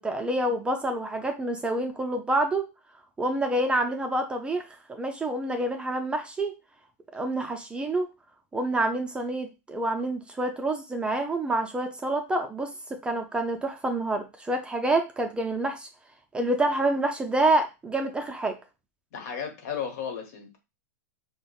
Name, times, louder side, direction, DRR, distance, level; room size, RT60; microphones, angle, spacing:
voice 1, 0.0-2.7 3.2-6.5 7.1-8.1 8.5-15.9 16.3-18.6, right 2 dB, 10° right, 4 dB, 0.4 m, -27 dB
voice 2, 19.1-20.6, left 7 dB, 60° left, 4 dB, 1.1 m, -34 dB
5.1 x 2.1 x 2.3 m, 0.26 s
hypercardioid pair, 120°, 9 cm